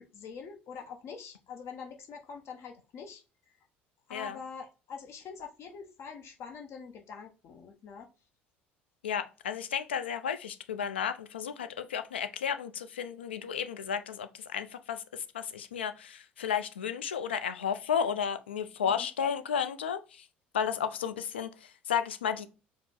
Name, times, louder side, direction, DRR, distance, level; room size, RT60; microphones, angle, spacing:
voice 1, 0.0-3.2 4.1-8.1 18.9-19.1, left 6 dB, 50° left, 0.8 m, -45 dB
voice 2, 9.0-20.3 20.5-22.5, left 8 dB, 80° left, 0.4 m, -33 dB
4.8 x 2.0 x 3.7 m
figure-of-eight pair, 60°, 6 cm